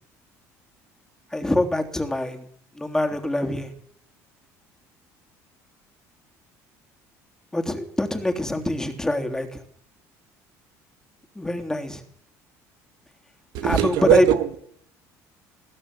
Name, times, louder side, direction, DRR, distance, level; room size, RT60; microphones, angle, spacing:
voice 1, 1.3-2.4 2.8-3.7 7.5-9.6 11.4-12.0 13.6-14.2, left 1 dB, 10° left, 4 dB, 3.3 m, -24 dB
voice 2, 13.5-14.6, right 12 dB, 75° right, 9 dB, 2.0 m, -20 dB
21.5 x 16.0 x 7.9 m, 0.66 s
supercardioid pair, 95°, 7 cm